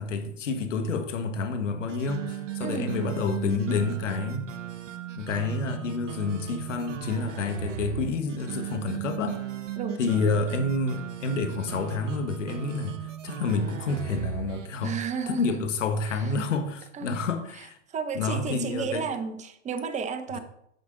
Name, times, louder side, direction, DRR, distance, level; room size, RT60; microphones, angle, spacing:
voice 1, 0.0-4.5 5.2-9.4 10.0-13.0 13.2-15.0 15.3-17.8 18.1-19.1, left 4 dB, 80° left, 1.3 m, -29 dB
sound 1, 1.9-14.7, right 11 dB, 80° right, 1.0 m, -37 dB
voice 2, 2.6-2.9 9.8-10.2 14.8-15.7 16.1-16.3 16.9-17.2 17.6-20.4, right 6 dB, 20° right, 0.8 m, -33 dB
9.4 x 6.2 x 3.9 m
hypercardioid pair, 110°, 37 cm